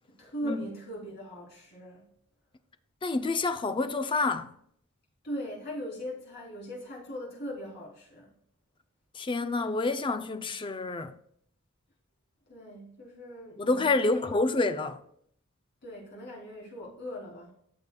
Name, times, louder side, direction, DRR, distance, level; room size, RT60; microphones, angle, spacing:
voice 1, 0.2-2.1 5.2-8.3 12.5-14.5 15.8-17.5, equal, 50° left, 3.4 m, -40 dB
voice 2, 3.0-4.5 9.1-11.1 13.6-15.0, left 3 dB, 25° left, 0.4 m, -28 dB
13.5 x 6.5 x 2.3 m
head